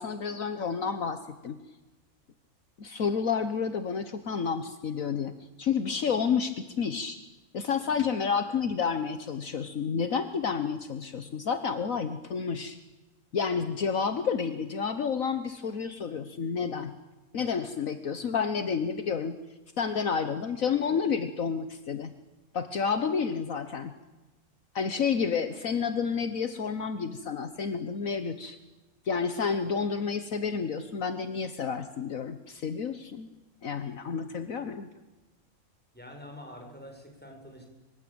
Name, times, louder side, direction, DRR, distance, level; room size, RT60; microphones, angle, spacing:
voice 1, 0.0-1.6 2.8-5.3 5.6-7.2 7.5-12.8 13.3-16.9 17.3-19.4 19.8-22.1 22.5-23.9 24.7-28.6 29.0-33.3 33.6-34.9, left 6 dB, 65° left, 10 dB, 1.7 m, -30 dB
voice 2, 35.9-37.7, equal, 5° left, 2 dB, 7.2 m, -46 dB
26.0 x 25.0 x 8.9 m, 1.2 s
omnidirectional pair, 1.5 m